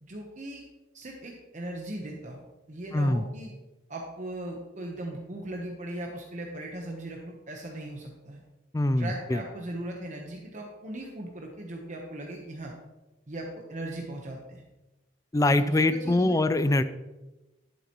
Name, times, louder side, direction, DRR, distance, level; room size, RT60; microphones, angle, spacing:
voice 1, 0.0-0.7 0.9-3.5 3.9-8.4 9.0-12.7 13.3-14.6 15.5-16.4, right 1 dB, 40° right, 0 dB, 1.0 m, -38 dB
voice 2, 2.9-3.2 8.7-9.4 15.3-16.8, left 2 dB, 15° left, 12 dB, 0.4 m, -23 dB
11.5 x 7.8 x 3.0 m, 1.1 s
head